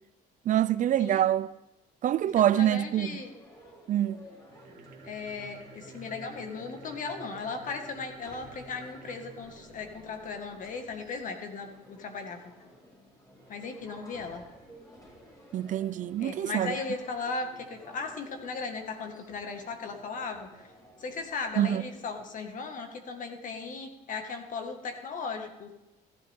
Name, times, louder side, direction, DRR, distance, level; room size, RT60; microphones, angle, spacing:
voice 1, 0.5-1.5 2.0-3.2 3.9-4.2 15.5-16.7 21.6-21.8, right 11 dB, 50° right, 0.4 m, -25 dB
voice 2, 2.3-3.3 5.0-12.4 13.5-14.4 16.2-20.7 21.0-25.7, left 4 dB, 50° left, 1.9 m, -37 dB
sound 1, 2.8-22.4, equal, 20° left, 4.1 m, -54 dB
sound 2, 4.4-10.7, right 3 dB, 65° right, 2.0 m, -51 dB
15.0 x 12.5 x 3.7 m
cardioid pair, 110°, 17 cm